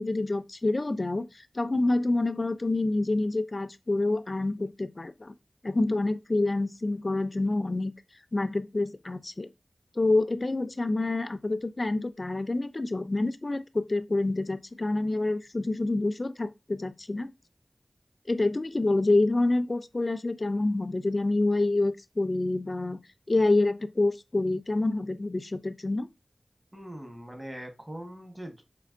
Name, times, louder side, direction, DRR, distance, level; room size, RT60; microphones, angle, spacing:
voice 1, 0.0-5.3 5.6-7.9 8.3-9.5 10.0-17.3 18.3-23.0 23.3-26.1, left 2 dB, 45° left, 0.3 m, -27 dB
voice 2, 26.7-28.6, equal, 20° right, 1.1 m, -41 dB
5.1 x 2.9 x 2.5 m
wide cardioid pair, 65°, 0 cm